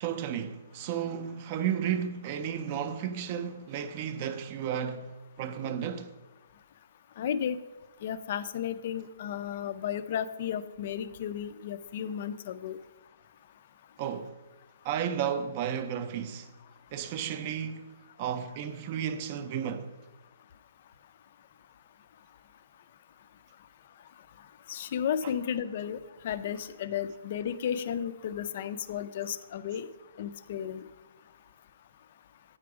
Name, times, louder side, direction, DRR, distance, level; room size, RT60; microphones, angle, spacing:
voice 1, 0.0-6.1 14.0-14.4 14.8-16.5 16.9-17.9 18.2-19.9 25.2-25.3, right 8 dB, 30° right, 0.4 m, -33 dB
voice 2, 7.2-7.6 8.0-12.8 24.7-26.0 26.2-29.9 30.2-30.9, left 9 dB, 40° left, 0.4 m, -33 dB
8.6 x 5.0 x 4.7 m
hypercardioid pair, 170°, 0 cm